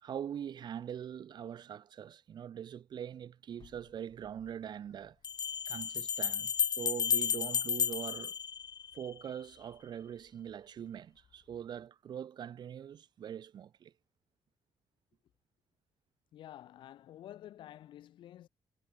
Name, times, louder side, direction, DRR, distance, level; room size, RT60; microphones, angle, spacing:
voice 1, 0.0-5.2 5.7-8.4 8.9-13.9, right 9 dB, 65° right, 2.1 m, -43 dB
sound 1, 3.6-3.7 5.2-9.2, left 8 dB, 55° left, 2.4 m, -33 dB
voice 2, 16.3-18.5, left 12 dB, 90° left, 6.9 m, -50 dB
cardioid pair, 105°, 8 cm